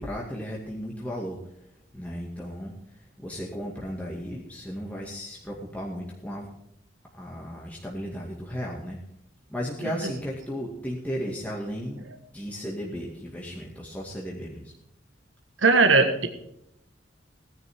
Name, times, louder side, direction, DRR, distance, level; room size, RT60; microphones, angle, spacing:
voice 1, 0.0-1.7 1.9-6.5 7.2-9.0 9.5-12.0 12.3-14.7, equal, 10° left, -3 dB, 2.1 m, -35 dB
voice 2, 15.6-16.3, right 4 dB, 75° right, 6 dB, 1.6 m, -19 dB
18.0 x 10.5 x 3.6 m, 0.77 s
head